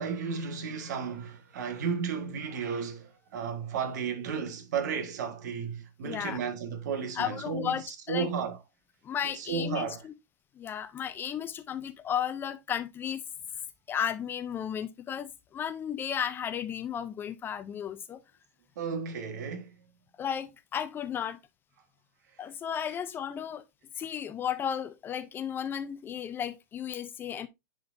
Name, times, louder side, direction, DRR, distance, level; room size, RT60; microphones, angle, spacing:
voice 1, 0.0-8.6 9.2-10.0 18.8-19.7, right 6 dB, 65° right, 1.6 m, -33 dB
voice 2, 6.0-6.4 7.2-7.8 8.1-8.3 9.0-10.1 10.6-13.2 13.9-18.2 20.2-21.4 22.4-23.6 24.0-27.5, left 8 dB, 20° left, 0.5 m, -34 dB
10.5 x 3.9 x 2.6 m
hypercardioid pair, 125°, 10 cm